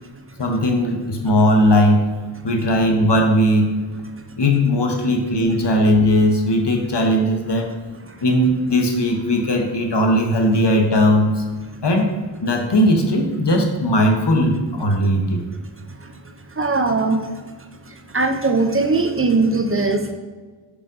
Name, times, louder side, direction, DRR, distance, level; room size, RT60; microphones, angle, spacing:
voice 1, 0.4-2.1 2.4-3.8 4.4-7.7 8.2-11.4 11.8-12.1 12.4-15.4, equal, 60° left, 3 dB, 0.9 m, -18 dB
voice 2, 16.5-17.2 17.9-20.1, right 3 dB, 30° right, 5 dB, 0.6 m, -20 dB
5.2 x 4.9 x 3.6 m, 1.4 s
wide cardioid pair, 50°, 48 cm